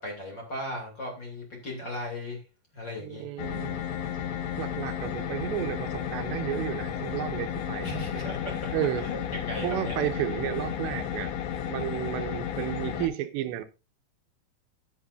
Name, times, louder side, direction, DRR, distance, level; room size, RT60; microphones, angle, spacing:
voice 1, 0.0-2.4 2.7-3.3 7.8-8.7 9.0-10.0, left 1 dB, 30° left, 2.8 m, -36 dB
voice 2, 3.0-3.8 4.6-7.9 8.7-9.1 9.6-13.6, right 12 dB, 85° right, 3.1 m, -32 dB
sound 1, 3.4-13.1, left 9 dB, 80° left, 3.5 m, -33 dB
14.5 x 8.3 x 2.6 m
omnidirectional pair, 5.1 m